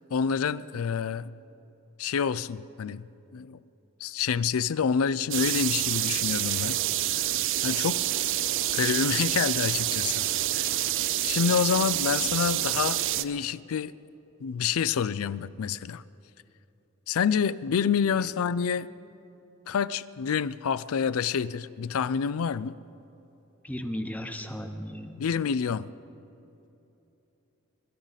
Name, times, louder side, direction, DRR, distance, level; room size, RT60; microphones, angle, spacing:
voice 1, 0.0-1.3 2.0-3.6 4.0-7.3 7.6-8.0 8.7-10.3 10.5-10.7 11.2-13.9 14.4-16.0 17.1-18.9 19.7-22.7 25.2-25.9, left 6 dB, 75° left, 17 dB, 0.4 m, -28 dB
sound 1, 5.3-13.2, right 13 dB, 60° right, 0.5 m, -27 dB
voice 2, 23.6-25.2, equal, 5° left, 6 dB, 0.9 m, -35 dB
23.0 x 13.0 x 4.1 m, 2.9 s
head